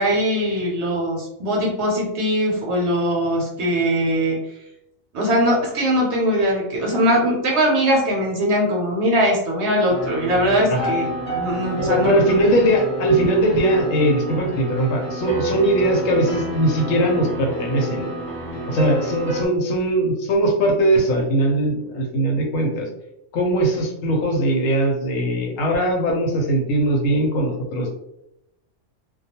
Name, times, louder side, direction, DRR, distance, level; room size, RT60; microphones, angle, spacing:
voice 1, 0.0-4.4 5.1-12.1, equal, 65° right, -2 dB, 0.8 m, -21 dB
sound 1, 9.9-19.5, right 1 dB, 30° left, 0.9 m, -29 dB
voice 2, 11.8-18.1 18.7-22.9 23.3-27.9, right 1 dB, 90° left, 1 dB, 1.0 m, -20 dB
2.2 x 2.2 x 2.8 m, 0.83 s
omnidirectional pair, 1.3 m